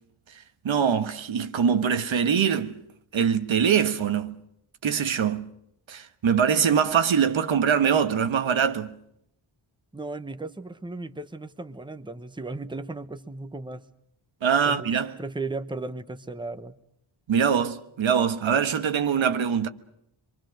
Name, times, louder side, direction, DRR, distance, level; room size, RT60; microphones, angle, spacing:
voice 1, 0.6-2.7 3.1-4.3 4.8-5.5 5.9-8.9 14.4-15.1 17.3-19.7, right 7 dB, 80° right, 1.4 m, -23 dB
voice 2, 9.9-13.9 14.6-14.9 15.2-16.8, right 3 dB, 10° right, 1.0 m, -36 dB
26.0 x 24.5 x 6.5 m
wide cardioid pair, 125°, 46 cm